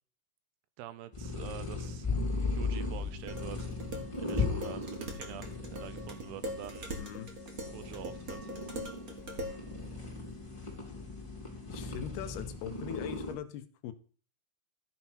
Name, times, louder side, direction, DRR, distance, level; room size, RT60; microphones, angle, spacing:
voice 1, 0.8-2.1 2.5-3.7 4.2-6.9 7.7-8.5, right 12 dB, 80° right, 13 dB, 2.7 m, -46 dB
sound 1, 1.1-13.3, left 3 dB, 10° left, 2.5 m, -37 dB
sound 2, 2.0-12.0, left 2 dB, 25° right, 2.2 m, -51 dB
Dishes pots and pans, 3.3-9.6, equal, 40° right, 1.2 m, -42 dB
voice 2, 7.0-7.3 11.7-13.9, left 10 dB, 80° left, 10 dB, 2.6 m, -41 dB
13.5 x 5.9 x 6.0 m, 0.39 s
omnidirectional pair, 4.9 m